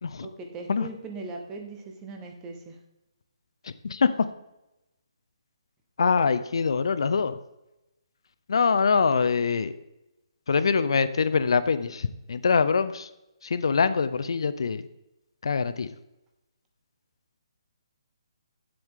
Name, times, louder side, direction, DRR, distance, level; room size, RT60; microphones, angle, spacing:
voice 1, 0.2-2.8, right 3 dB, 10° right, 3 dB, 0.8 m, -39 dB
voice 2, 3.6-4.3 6.0-7.4 8.5-9.7 10.5-13.1 13.4-14.9 15.4-15.9, left 5 dB, 60° left, 13 dB, 0.5 m, -24 dB
8.2 x 7.6 x 3.6 m, 0.93 s
hypercardioid pair, 170°, 3 cm